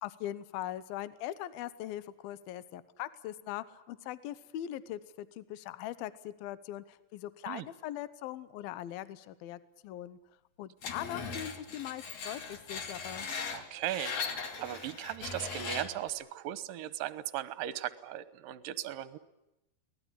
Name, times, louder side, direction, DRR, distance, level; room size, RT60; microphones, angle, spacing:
voice 1, 0.0-10.2 10.6-13.3, left 13 dB, 70° left, 16 dB, 2.6 m, -41 dB
Screech, 10.8-16.1, left 5 dB, 45° left, 2.9 m, -39 dB
voice 2, 13.5-14.1 14.6-19.2, right 13 dB, 70° right, 15 dB, 2.4 m, -37 dB
23.5 x 19.0 x 9.9 m, 0.91 s
omnidirectional pair, 4.8 m